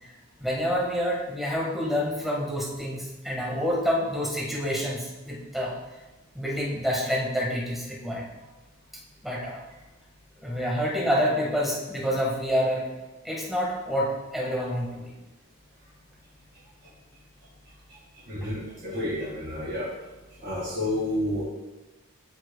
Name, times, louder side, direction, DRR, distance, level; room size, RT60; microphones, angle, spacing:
voice 1, 0.0-5.7 6.3-8.2 9.2-9.6 10.4-12.9 13.2-15.1, equal, ahead, -4 dB, 1.6 m, -28 dB
voice 2, 18.3-19.9 20.4-21.4, left 1 dB, 50° right, -7 dB, 2.1 m, -30 dB
13.0 x 5.8 x 2.3 m, 1.1 s
head